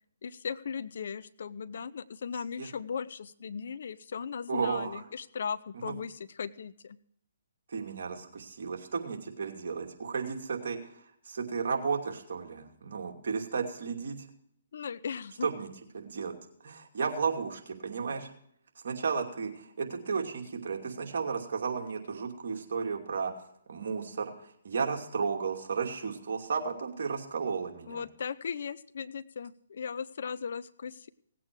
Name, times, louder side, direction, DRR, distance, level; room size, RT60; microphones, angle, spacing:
voice 1, 0.2-7.0 14.7-15.5 27.9-31.1, left 6 dB, 65° left, 15 dB, 0.7 m, -37 dB
voice 2, 4.5-5.0 5.8-5.9 7.7-14.3 15.4-15.7 15.9-16.3 16.6-18.3 18.8-23.3 23.7-28.0, right 5 dB, 65° right, 1 dB, 2.7 m, -33 dB
18.5 x 8.5 x 4.7 m, 0.69 s
hypercardioid pair, 140°, 0 cm